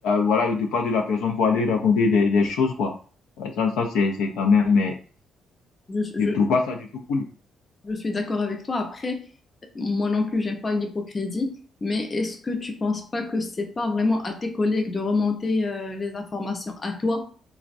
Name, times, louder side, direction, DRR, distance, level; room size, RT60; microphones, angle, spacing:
voice 1, 0.0-2.9 3.4-5.0 6.2-7.2, left 5 dB, 90° left, 3 dB, 0.4 m, -22 dB
voice 2, 5.9-6.3 7.8-9.3 9.7-17.3, left 3 dB, 30° left, 5 dB, 0.5 m, -27 dB
3.3 x 2.1 x 2.5 m, 0.40 s
cardioid pair, 90°, 0 cm